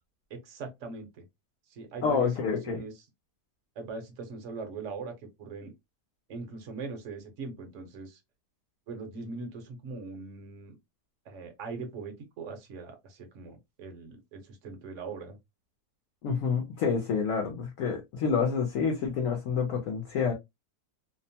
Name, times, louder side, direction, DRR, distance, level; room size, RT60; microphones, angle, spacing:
voice 1, 0.3-1.2 1.7-2.9 3.8-5.1 5.4-5.7 6.3-8.2 8.9-10.7 11.3-15.4, right 4 dB, 55° right, 1.0 m, -41 dB
voice 2, 2.0-2.8 16.2-20.3, left 6 dB, 65° left, 0.9 m, -28 dB
2.8 x 2.1 x 2.6 m
omnidirectional pair, 1.8 m